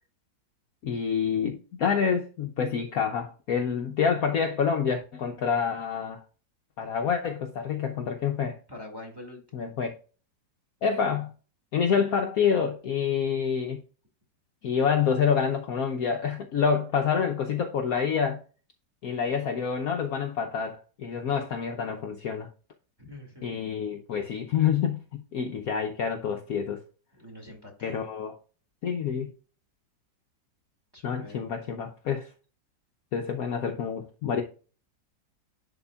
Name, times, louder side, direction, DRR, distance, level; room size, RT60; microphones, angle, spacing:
voice 1, 0.8-6.2 6.8-8.6 9.5-9.9 10.8-11.3 11.7-13.8 14.6-18.4 19.0-22.5 23.4-26.8 27.8-28.4 28.8-29.3 31.0-32.3 33.1-34.4, left 7 dB, 65° left, 1.0 m, -27 dB
voice 2, 8.7-9.7 23.0-23.5 27.1-28.1 30.9-31.6, left 1 dB, 15° right, 1.8 m, -45 dB
11.0 x 4.3 x 2.3 m
omnidirectional pair, 2.0 m